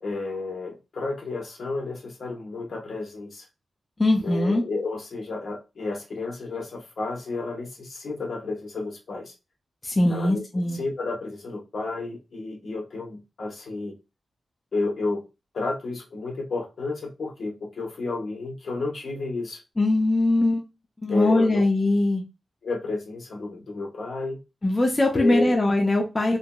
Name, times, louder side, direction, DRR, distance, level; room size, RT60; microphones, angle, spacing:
voice 1, 0.0-3.5 4.2-9.3 10.1-10.4 10.7-14.0 14.7-15.2 15.5-19.6 21.1-21.7 22.6-24.4 25.1-25.6, left 3 dB, 60° left, 0.9 m, -31 dB
voice 2, 4.0-4.6 9.8-10.8 19.8-20.6 21.0-22.2 24.6-26.4, left 2 dB, 25° left, 0.5 m, -21 dB
2.8 x 2.5 x 2.2 m
wide cardioid pair, 120°, 0 cm